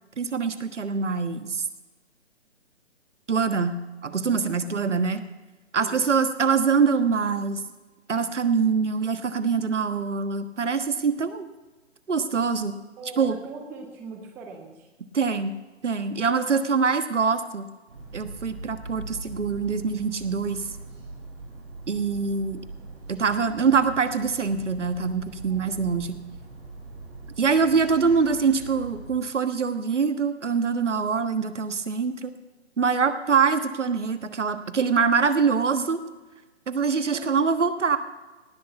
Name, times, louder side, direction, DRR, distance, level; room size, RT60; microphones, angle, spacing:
voice 1, 0.2-1.6 3.3-3.8 4.0-5.2 5.7-7.6 8.1-11.5 12.1-12.7 13.2-13.4 15.1-15.5 15.8-17.7 18.1-20.6 21.9-22.6 23.1-26.2 27.4-32.3 32.8-36.0 36.7-38.0, right 5 dB, 75° right, 11 dB, 1.4 m, -24 dB
voice 2, 4.5-4.8 5.8-6.0 13.0-14.9 25.5-25.8 37.1-37.2, right 4 dB, 5° right, 3 dB, 0.6 m, -41 dB
sound 1, 17.9-29.2, right 2 dB, 55° right, 4.7 m, -41 dB
18.0 x 6.4 x 8.0 m, 1.2 s
figure-of-eight pair, 140°, 37 cm